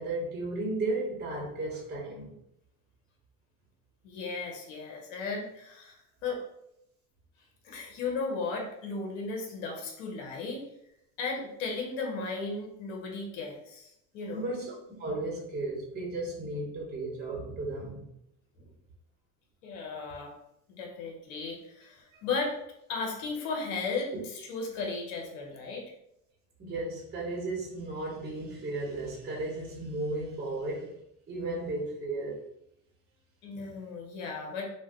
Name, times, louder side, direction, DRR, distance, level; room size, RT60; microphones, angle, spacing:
voice 1, 0.0-2.3 14.3-14.7 15.0-18.0 22.1-22.2 26.6-30.9 31.3-32.4, right 2 dB, 25° right, -3 dB, 0.9 m, -34 dB
voice 2, 4.0-6.4 7.6-10.6 11.2-14.5 18.6-18.7 19.6-20.4 20.8-22.6 22.9-25.8 33.4-34.6, left 4 dB, 75° left, 0 dB, 0.9 m, -35 dB
2.5 x 2.2 x 3.5 m, 0.80 s
supercardioid pair, 105°, 39 cm